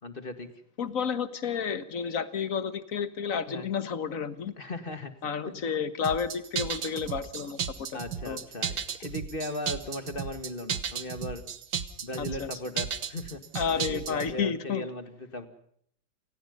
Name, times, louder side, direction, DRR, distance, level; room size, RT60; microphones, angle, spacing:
voice 1, 0.0-0.5 3.4-3.7 4.6-5.1 7.4-7.5 7.9-8.7 9.0-11.4 12.0-13.4 13.7-15.5, left 1 dB, 30° left, 9 dB, 2.2 m, -37 dB
voice 2, 0.8-4.5 5.2-7.9 8.2-8.4 12.2-12.5 13.5-14.9, left 6 dB, 50° left, 13 dB, 1.7 m, -31 dB
sound 1, 6.0-14.3, right 8 dB, 70° right, 2.0 m, -34 dB
29.0 x 19.0 x 5.4 m, 0.65 s
omnidirectional pair, 1.9 m